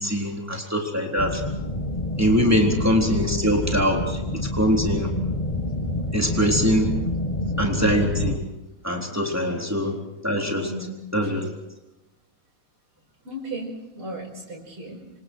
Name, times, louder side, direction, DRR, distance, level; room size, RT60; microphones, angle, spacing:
voice 1, 0.0-1.4 2.2-5.1 6.1-6.9 7.6-8.4 8.8-9.9 10.2-10.7 11.1-11.5, equal, 5° right, 1 dB, 3.9 m, -23 dB
sound 1, 1.2-8.4, left 1 dB, 20° left, 1.4 m, -28 dB
voice 2, 10.7-11.4 13.2-13.7 14.0-15.0, right 1 dB, 75° right, -2 dB, 6.2 m, -36 dB
26.5 x 26.5 x 4.7 m, 1.0 s
omnidirectional pair, 2.4 m